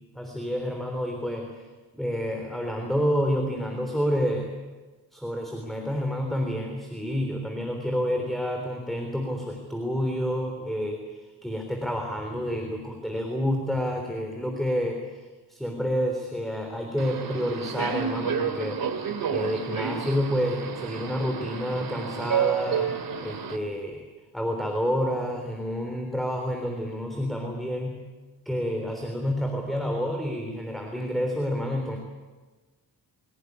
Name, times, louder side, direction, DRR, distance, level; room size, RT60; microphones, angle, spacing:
voice 1, 0.2-1.7 1.9-4.5 5.1-15.2 15.5-18.8 19.3-24.1 24.3-28.0 28.5-32.0, equal, ahead, 2 dB, 3.5 m, -29 dB
Subway metro underground, 17.0-23.6, right 7 dB, 60° right, 2.5 m, -30 dB
24.5 x 17.0 x 9.6 m, 1.3 s
wide cardioid pair, 110°, 40 cm